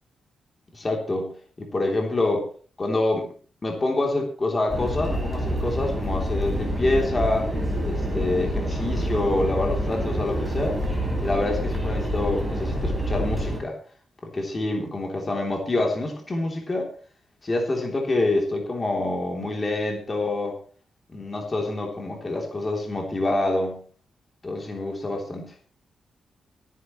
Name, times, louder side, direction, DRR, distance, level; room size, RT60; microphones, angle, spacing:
voice 1, 0.7-2.5 2.8-3.3 3.6-7.5 7.8-10.8 11.2-13.8 14.2-16.9 17.4-20.6 21.1-23.8 24.4-25.5, left 2 dB, 25° left, 1 dB, 3.3 m, -26 dB
sound 1, 4.7-13.6, equal, ahead, 4.5 m, -27 dB
24.0 x 10.5 x 3.2 m, 0.39 s
wide cardioid pair, 160°, 0 cm